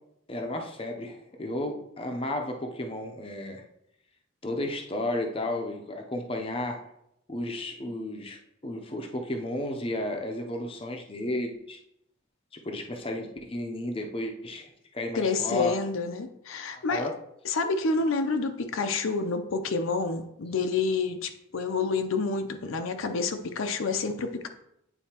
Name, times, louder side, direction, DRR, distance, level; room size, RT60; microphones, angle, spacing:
voice 1, 0.3-3.6 4.4-6.8 7.3-8.4 8.6-11.8 12.6-15.8 16.9-17.1, left 1 dB, 25° left, 0.6 m, -33 dB
voice 2, 15.1-17.1 17.4-24.5, left 4 dB, 75° left, 0.6 m, -28 dB
9.0 x 4.1 x 2.9 m
head